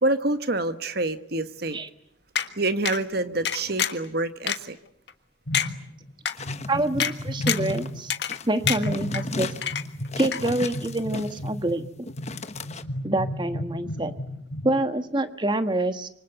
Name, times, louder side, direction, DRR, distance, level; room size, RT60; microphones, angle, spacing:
voice 1, 0.0-1.8 2.5-4.8, right 2 dB, 60° right, 11 dB, 1.4 m, -27 dB
sound 1, 2.4-2.5 2.9-3.0 3.5-4.1 4.5-4.6 5.1-5.2 5.5-5.7 6.3-6.4 7.0-7.1 7.5-7.7 8.1-8.4 8.7-9.2 9.6-10.1 10.3-10.4, left 8 dB, 65° left, 1.5 m, -26 dB
sound 2, 5.5-6.1 6.4-8.1 8.6-14.7, left 1 dB, 85° left, 3.9 m, -33 dB
sound 3, 6.3-7.9 8.3-8.5 8.9-11.6 12.1-12.8, left 3 dB, 40° left, 1.3 m, -36 dB
voice 2, 6.7-8.1 8.4-9.5 10.1-12.1 13.0-14.1 14.6-16.1, right 1 dB, 25° right, 9 dB, 1.5 m, -26 dB
26.5 x 25.0 x 8.0 m, 0.75 s
head